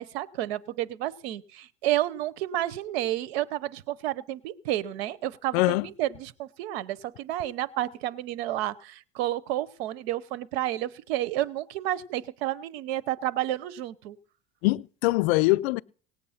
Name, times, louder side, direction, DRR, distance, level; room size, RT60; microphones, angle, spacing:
voice 1, 0.0-14.2, right 14 dB, 90° right, 0.8 m, -31 dB
voice 2, 5.5-5.9 14.6-15.8, left 21 dB, 85° left, 0.5 m, -23 dB
18.5 x 8.2 x 5.7 m
supercardioid pair, 95°, 30 cm